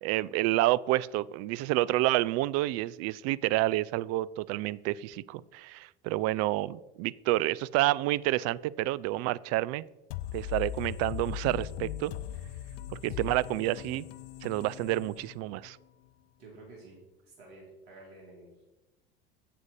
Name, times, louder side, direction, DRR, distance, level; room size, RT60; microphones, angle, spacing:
voice 1, 0.0-9.8 10.3-12.1 12.9-14.1 14.4-15.8, right 17 dB, 60° right, 21 dB, 0.4 m, -29 dB
sound 1, 10.1-15.7, left 12 dB, 80° left, 0.6 m, -39 dB
voice 2, 16.4-17.0 17.2-18.6, right 2 dB, 80° right, -3 dB, 2.8 m, -51 dB
7.9 x 6.8 x 5.5 m, 1.0 s
hypercardioid pair, 80°, 29 cm